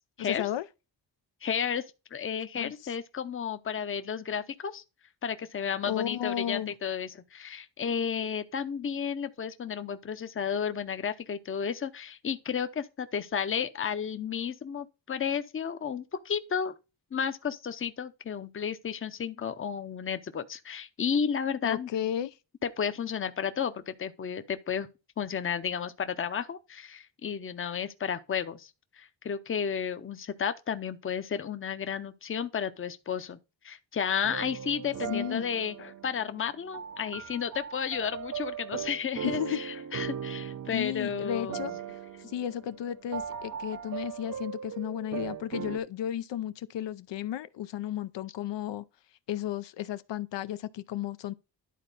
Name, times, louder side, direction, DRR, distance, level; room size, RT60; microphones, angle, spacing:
voice 1, 0.2-0.6 2.6-2.7 5.8-6.7 21.6-22.3 35.1-35.4 39.2-39.6 40.7-41.7 42.3-48.8 49.3-51.3, left 11 dB, 80° left, 0.6 m, -33 dB
voice 2, 1.4-1.9 2.1-4.8 5.2-16.7 17.1-21.9 22.6-24.9 25.2-33.4 33.6-41.7, left 7 dB, 30° left, 0.7 m, -32 dB
sound 1, 34.2-45.8, right 8 dB, 45° right, 0.6 m, -39 dB
11.0 x 4.2 x 3.9 m
wide cardioid pair, 145°, 43 cm